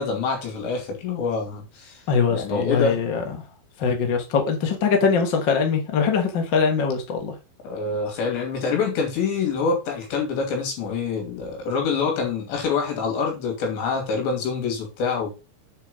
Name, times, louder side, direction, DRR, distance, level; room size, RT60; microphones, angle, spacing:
voice 1, 0.0-2.0 2.3-3.0 7.6-15.3, left 5 dB, 70° left, 4.8 m, -26 dB
voice 2, 2.1-3.2 3.8-7.3, left 5 dB, 55° left, 1.2 m, -22 dB
8.5 x 4.7 x 5.2 m
omnidirectional pair, 5.3 m